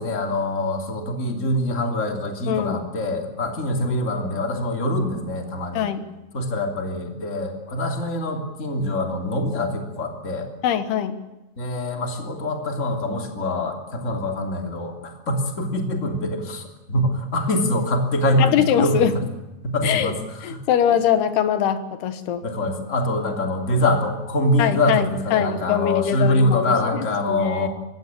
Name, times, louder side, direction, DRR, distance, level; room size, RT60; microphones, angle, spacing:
voice 1, 0.0-5.9 6.3-10.5 11.6-19.1 19.6-20.6 22.4-27.7, left 1 dB, 20° left, 3 dB, 2.6 m, -24 dB
voice 2, 2.5-2.8 5.7-6.0 10.6-11.2 18.4-19.1 19.8-20.1 20.4-22.4 24.6-27.7, left 9 dB, 70° left, 10 dB, 3.2 m, -22 dB
23.5 x 17.0 x 8.4 m, 1.0 s
omnidirectional pair, 5.1 m